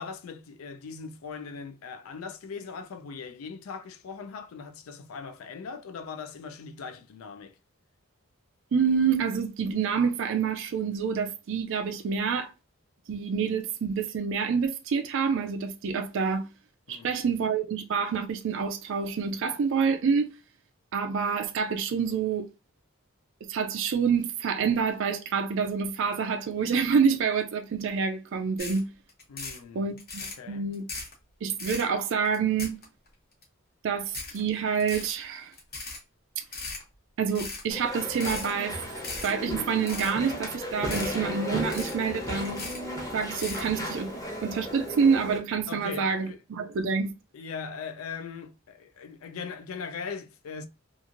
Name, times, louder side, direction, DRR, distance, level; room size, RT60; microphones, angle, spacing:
voice 1, 0.0-7.6 16.9-17.1 29.3-29.9 30.2-30.7 45.7-46.4 47.3-50.7, left 5 dB, 75° left, 0.4 m, -40 dB
voice 2, 8.7-12.5 13.1-16.5 16.9-20.3 20.9-22.5 23.5-28.9 29.7-30.8 31.4-32.8 33.8-35.5 36.4-36.5 37.2-38.8 39.2-42.6 43.1-44.1 44.4-47.1, right 6 dB, 60° right, 0.4 m, -27 dB
sound 1, 28.6-28.8 29.1-29.6 30.0-30.4 30.7-31.1 31.5-31.9 32.2-33.1 33.4-33.5 34.1-34.4 34.7-35.1 35.5-36.0 36.4-36.8 37.3-37.6 38.1-38.5 38.9-39.3 39.7-40.1 40.5-40.6 40.9-41.2 41.5-42.1 42.4-42.8 43.2-43.7, left 3 dB, 45° left, 1.0 m, -37 dB
Walk footsteps / Chatter / Squeak, 37.7-45.4, equal, 15° left, 0.8 m, -35 dB
3.0 x 2.4 x 2.4 m
head